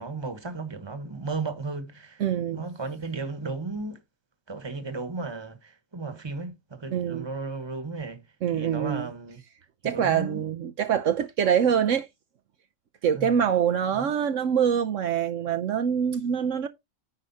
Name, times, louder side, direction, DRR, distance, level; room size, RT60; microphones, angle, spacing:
voice 1, 0.0-2.2 2.5-4.0 4.5-8.2 8.5-9.4 9.8-10.4 13.1-13.4 13.9-14.1, right 3 dB, 20° right, 1.3 m, -35 dB
voice 2, 2.2-2.6 6.9-7.3 8.4-9.1 9.8-12.1 13.0-16.7, right 8 dB, 70° right, 1.0 m, -25 dB
10.0 x 4.9 x 4.1 m
omnidirectional pair, 1.4 m